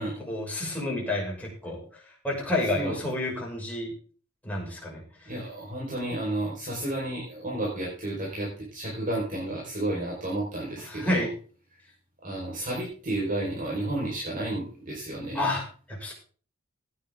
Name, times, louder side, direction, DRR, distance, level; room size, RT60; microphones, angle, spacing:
voice 1, 0.3-1.8 2.2-3.9 4.4-5.0 10.9-11.3 15.3-15.6 15.9-16.1, left 1 dB, 5° left, -3 dB, 6.1 m, -29 dB
voice 2, 5.3-11.2 12.2-15.5, right 1 dB, 40° right, -4 dB, 4.9 m, -32 dB
17.0 x 9.9 x 3.7 m, 0.41 s
head